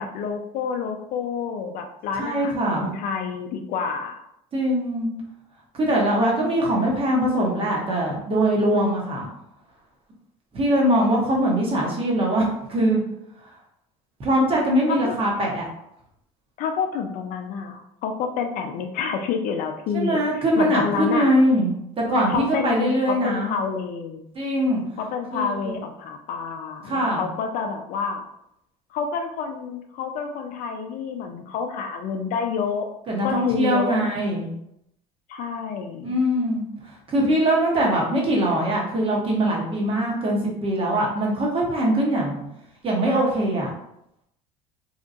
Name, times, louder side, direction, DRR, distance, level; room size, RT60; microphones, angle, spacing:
voice 1, 0.0-4.2 14.9-15.1 16.6-21.3 22.3-24.3 25.0-28.2 28.9-32.9 33.2-34.1 35.3-36.2, left 6 dB, 55° left, 5 dB, 0.4 m, -28 dB
voice 2, 2.2-2.9 4.5-5.1 5.7-9.3 10.5-13.0 14.2-15.7 19.9-21.7 22.0-23.5 24.3-24.8 25.3-25.7 26.8-27.3 33.1-34.5 36.0-36.6 37.1-42.4 42.8-43.7, right 1 dB, 35° right, -2 dB, 1.0 m, -22 dB
2.8 x 2.2 x 2.6 m, 0.79 s
supercardioid pair, 85°, 16 cm